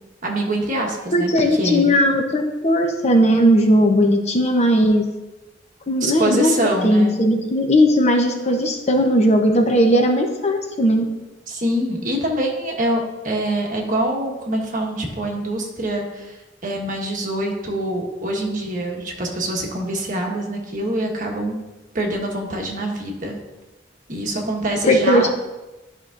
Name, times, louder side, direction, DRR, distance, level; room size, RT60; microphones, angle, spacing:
voice 1, 0.2-1.9 6.0-7.1 11.5-16.4 16.6-21.6 21.9-23.4 24.1-25.3, right 1 dB, 45° right, 1 dB, 1.3 m, -24 dB
voice 2, 1.1-5.1 5.9-6.5 6.8-11.0 24.8-25.3, equal, 35° left, 4 dB, 0.7 m, -17 dB
11.0 x 5.5 x 2.5 m, 1.1 s
head